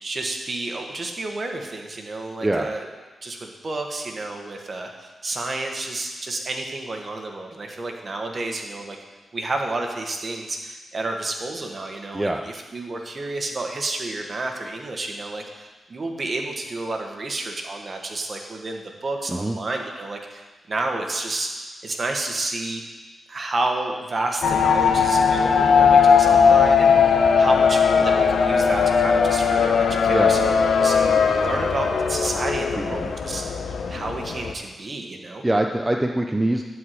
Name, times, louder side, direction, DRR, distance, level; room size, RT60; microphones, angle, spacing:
voice 1, 0.0-2.9 3.2-9.0 9.3-21.5 21.8-22.8 23.3-30.9 31.4-33.4 33.9-35.4, right 2 dB, 45° right, 2 dB, 1.7 m, -30 dB
sound 1, 24.4-34.5, left 6 dB, 80° left, 0.9 m, -18 dB
voice 2, 32.8-33.1 35.4-36.6, right 1 dB, 15° right, 2 dB, 0.7 m, -23 dB
12.0 x 4.9 x 8.4 m, 1.3 s
cardioid pair, 75°, 0 cm